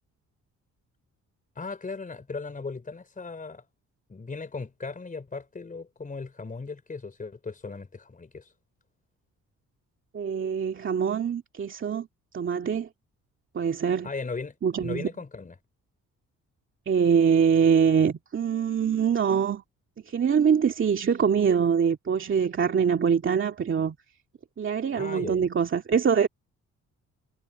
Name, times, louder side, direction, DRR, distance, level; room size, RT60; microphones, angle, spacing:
voice 1, 1.6-3.7 4.1-8.5 14.0-15.6 25.0-25.5, left 4 dB, 25° left, 4.3 m, -37 dB
voice 2, 10.1-12.1 12.3-12.9 13.5-14.1 14.6-15.1 16.9-19.6 20.1-24.0 24.6-26.3, right 7 dB, 40° right, 2.2 m, -24 dB
cardioid pair, 90°, 30 cm